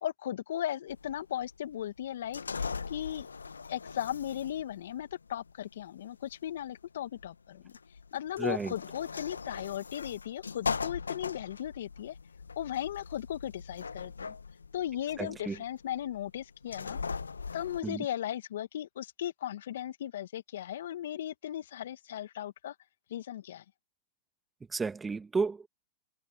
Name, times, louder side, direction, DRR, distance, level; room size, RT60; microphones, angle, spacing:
voice 1, 0.0-3.3 3.7-7.8 8.1-12.2 12.6-14.4 14.7-17.0 17.5-22.7 23.1-23.6, left 11 dB, 70° left, 2.4 m, -37 dB
sound 1, 0.9-17.8, left 5 dB, 90° left, 1.4 m, -40 dB
voice 2, 8.4-8.7 15.2-15.6 17.8-18.1 24.7-25.7, right 4 dB, 15° right, 2.3 m, -32 dB
hypercardioid pair, 100°, 0 cm